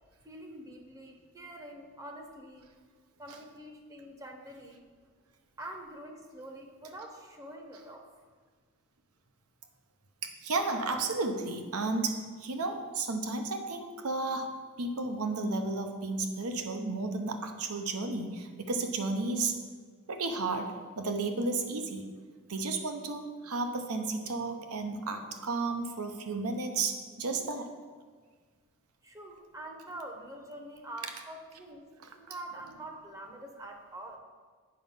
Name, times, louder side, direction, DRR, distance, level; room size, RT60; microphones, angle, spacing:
voice 1, 0.2-2.7 3.2-4.9 5.6-8.3 29.0-34.2, right 1 dB, 15° right, 2 dB, 0.7 m, -45 dB
voice 2, 10.2-14.5 14.8-19.6 20.1-22.1 22.5-27.7, right 3 dB, 90° right, 6 dB, 0.9 m, -33 dB
7.8 x 5.2 x 5.6 m, 1.5 s
head